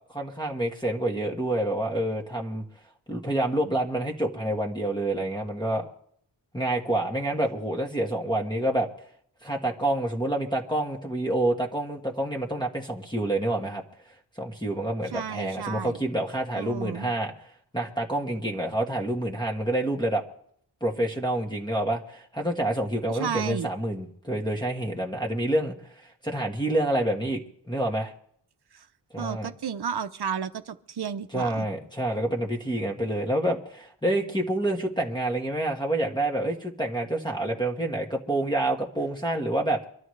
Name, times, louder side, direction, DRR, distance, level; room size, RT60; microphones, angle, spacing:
voice 1, 0.1-2.6 3.1-5.8 6.5-8.9 9.4-13.8 14.4-17.3 17.7-20.2 20.8-27.4 27.7-28.1 29.1-29.5 31.3-39.8, right 1 dB, 10° left, -3 dB, 1.5 m, -28 dB
voice 2, 15.1-16.0 16.6-17.1 23.1-23.7 28.7-28.9 29.2-31.7, right 7 dB, 65° right, 10 dB, 0.7 m, -32 dB
24.5 x 12.5 x 3.2 m, 0.66 s
wide cardioid pair, 80°, 43 cm